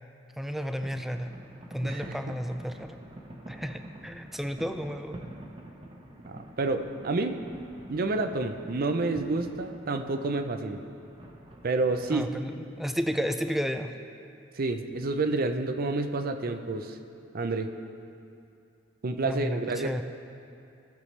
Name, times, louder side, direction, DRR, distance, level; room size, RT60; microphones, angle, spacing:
voice 1, 0.4-1.3 1.7-3.0 3.5-5.2 12.1-13.9 19.2-20.0, equal, ahead, 7 dB, 0.4 m, -32 dB
sound 1, 0.8-12.3, right 1 dB, 30° right, 1.0 m, -47 dB
voice 2, 1.8-2.2 6.3-7.4 7.9-10.8 11.6-12.3 14.6-17.0 17.3-17.7 19.0-20.0, right 3 dB, 50° right, 7 dB, 0.6 m, -29 dB
16.5 x 6.9 x 3.2 m, 2.6 s
head